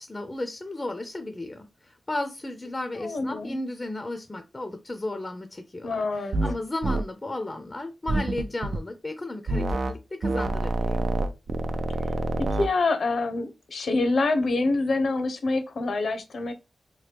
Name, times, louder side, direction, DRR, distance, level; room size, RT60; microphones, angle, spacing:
voice 1, 0.0-11.1, left 2 dB, 25° left, 7 dB, 0.4 m, -34 dB
voice 2, 3.0-3.6 5.8-6.4 12.4-16.5, left 3 dB, 75° left, 8 dB, 0.6 m, -26 dB
sound 1, 6.3-6.6 6.8-7.0 8.1-8.8 9.5-9.9 10.2-12.7, right 2 dB, 70° right, 0.4 m, -27 dB
2.9 x 2.2 x 3.3 m, 0.26 s
cardioid pair, 70°, 0 cm